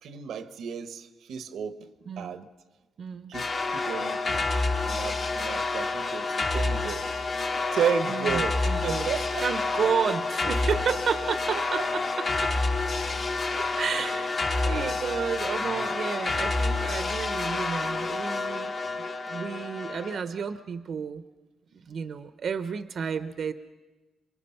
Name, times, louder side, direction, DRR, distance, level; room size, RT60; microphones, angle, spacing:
voice 1, 0.0-1.9 2.2-2.5 3.3-4.4 4.8-7.1 7.7-9.4 11.5-11.8 13.5-13.7 14.7-14.9 15.6-15.8, right 7 dB, 85° right, 1.0 m, -33 dB
voice 2, 3.0-3.3 8.1-12.5 13.8-14.3 14.6-21.2 21.7-23.5, right 6 dB, 60° right, 0.7 m, -32 dB
sound 1, 3.3-20.2, left 3 dB, 45° left, 1.5 m, -28 dB
27.0 x 22.5 x 5.8 m
cardioid pair, 115°, 0 cm